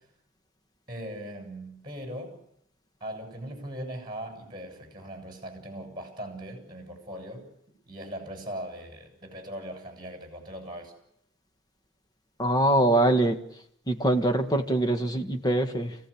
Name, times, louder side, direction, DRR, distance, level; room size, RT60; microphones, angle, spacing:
voice 1, 0.9-2.4 3.0-7.5 7.9-10.9, right 1 dB, 25° right, 4 dB, 7.5 m, -39 dB
voice 2, 12.4-13.4 13.9-16.0, right 1 dB, 20° left, 5 dB, 1.8 m, -23 dB
28.5 x 17.0 x 8.7 m, 0.75 s
head